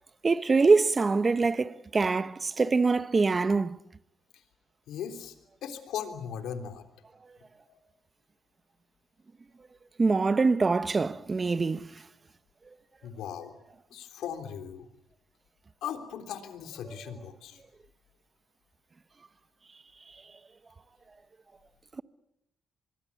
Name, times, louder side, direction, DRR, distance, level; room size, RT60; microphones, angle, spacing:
voice 1, 0.2-3.8 10.0-11.9, right 4 dB, 30° right, 0.9 m, -24 dB
voice 2, 4.9-5.3 5.6-6.8 7.7-7.8 13.0-13.5 13.9-14.9 15.8-17.6, left 8 dB, 80° left, 3.4 m, -38 dB
25.0 x 21.5 x 8.4 m
cardioid pair, 90°, 0 cm